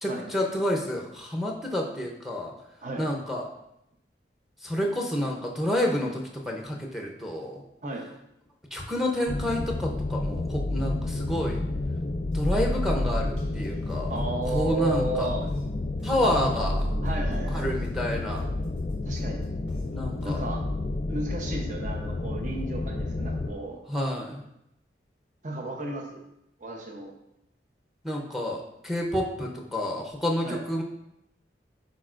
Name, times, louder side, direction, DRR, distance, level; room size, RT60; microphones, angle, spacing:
voice 1, 0.0-2.5 3.0-3.5 4.6-7.6 8.7-11.6 12.3-14.2 14.5-15.3 16.0-16.9 17.5-18.5 19.9-20.4 23.9-24.4 28.0-30.8, left 1 dB, ahead, 0 dB, 0.7 m, -29 dB
sound 1, 9.3-23.5, left 2 dB, 35° left, 0.4 m, -31 dB
sound 2, 12.3-13.6 15.5-15.6 16.5-17.9 19.7-19.8 20.3-20.4, equal, 85° right, 1.6 m, -30 dB
voice 2, 14.1-15.4 17.0-17.7 19.1-19.4 20.2-20.6 21.1-23.8 25.4-26.2 26.6-27.1 30.4-30.6, right 2 dB, 45° right, 1 dB, 0.9 m, -33 dB
10.5 x 4.1 x 2.5 m, 0.81 s
head